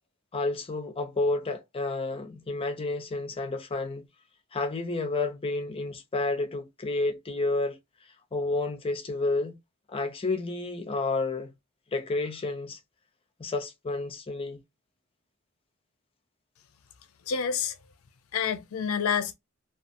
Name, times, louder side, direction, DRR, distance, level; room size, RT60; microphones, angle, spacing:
voice 1, 0.3-4.1 4.5-7.8 8.3-9.5 9.9-11.5 11.9-12.8 13.4-14.6, left 2 dB, 25° left, 0.5 m, -30 dB
voice 2, 17.3-17.7 18.3-19.3, left 7 dB, 80° left, 0.5 m, -28 dB
2.5 x 2.3 x 2.5 m
head